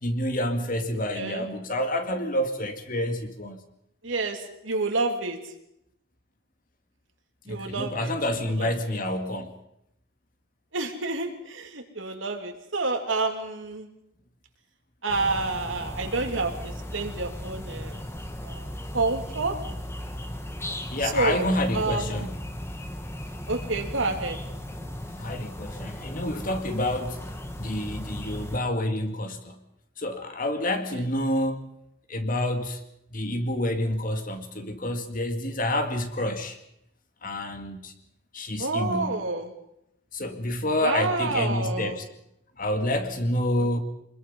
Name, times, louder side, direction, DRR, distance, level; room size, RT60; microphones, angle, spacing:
voice 1, 0.0-3.6 7.5-9.5 20.9-22.4 25.2-27.2 27.6-29.6 30.0-31.7 32.1-32.8 33.1-36.6 37.2-37.9 38.3-39.2 40.1-42.0 42.6-43.8, left 1 dB, 45° left, 6 dB, 2.1 m, -28 dB
voice 2, 4.0-5.4 7.5-8.1 8.5-8.7 10.7-13.9 15.0-18.0 18.4-18.7 18.9-19.6 21.0-21.5 21.7-22.3 23.5-24.4 30.9-31.0 38.6-39.5 40.8-42.0 43.6-43.7, right 3 dB, 75° right, 4 dB, 3.0 m, -29 dB
sound 1, 15.1-28.6, left 1 dB, 15° left, 1.6 m, -36 dB
26.0 x 21.0 x 5.6 m, 0.78 s
head